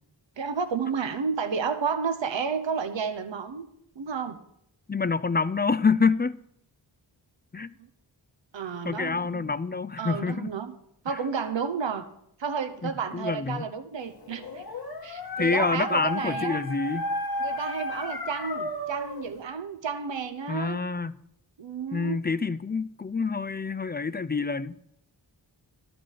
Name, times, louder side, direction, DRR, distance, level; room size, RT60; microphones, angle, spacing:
voice 1, 0.4-3.7 4.0-4.4 8.5-9.4 10.0-10.7 11.0-12.0 12.4-14.6 15.0-16.6 17.4-20.8 21.6-22.2, right 6 dB, 70° right, 0.9 m, -31 dB
voice 2, 4.9-6.4 7.5-7.7 8.8-10.5 12.8-13.6 15.4-17.1 20.5-21.1 21.9-24.9, left 4 dB, 25° left, 0.4 m, -27 dB
Dog, 14.2-19.3, left 1 dB, 50° left, 1.5 m, -33 dB
12.5 x 5.1 x 7.2 m
wide cardioid pair, 45°, 46 cm